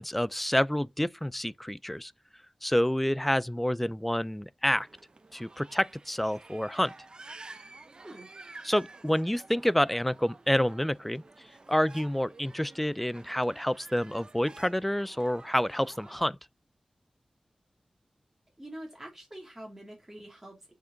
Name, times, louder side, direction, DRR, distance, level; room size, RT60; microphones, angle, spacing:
voice 1, 0.0-2.1 2.6-4.9 5.3-6.9 8.6-11.2 11.7-16.4, equal, 5° left, 0.3 m, -28 dB
sound 1, 4.7-16.3, right 3 dB, 45° right, 0.7 m, -51 dB
voice 2, 18.6-20.7, right 1 dB, 20° right, 2.7 m, -45 dB
7.0 x 5.0 x 3.8 m
wide cardioid pair, 100°, 2 cm